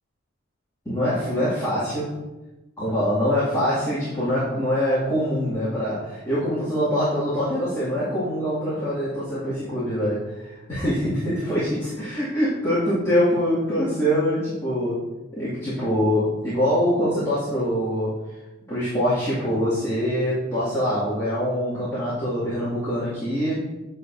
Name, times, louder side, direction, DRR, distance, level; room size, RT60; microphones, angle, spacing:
voice 1, 0.9-2.1 2.8-15.0 15.4-18.1 18.7-23.6, equal, 15° left, -12 dB, 2.2 m, -24 dB
9.9 x 6.7 x 2.6 m, 1.1 s
head